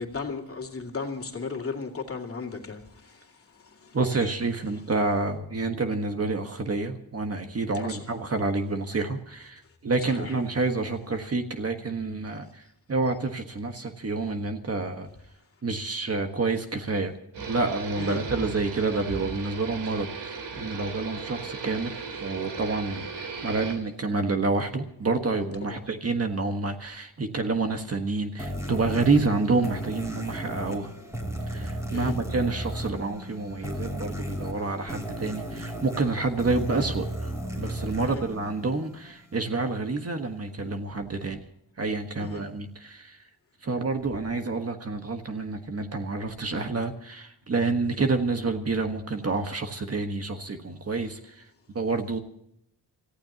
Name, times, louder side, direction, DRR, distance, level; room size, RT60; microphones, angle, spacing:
voice 1, 0.0-4.3 7.7-8.0 10.1-10.4 18.0-18.2 25.6-25.8 31.9-32.2 38.0-38.2 42.2-42.4, left 4 dB, 35° left, 2.5 m, -36 dB
voice 2, 3.9-15.1 15.6-17.1 17.4-30.9 31.5-37.3 37.6-41.5 41.8-43.3 43.6-52.2, right 3 dB, 35° right, 1.5 m, -28 dB
sound 1, 17.3-23.8, right 5 dB, 85° right, 2.9 m, -37 dB
sound 2, 28.4-39.2, right 1 dB, 5° right, 3.1 m, -34 dB
27.0 x 15.0 x 2.9 m
wide cardioid pair, 140°, 40 cm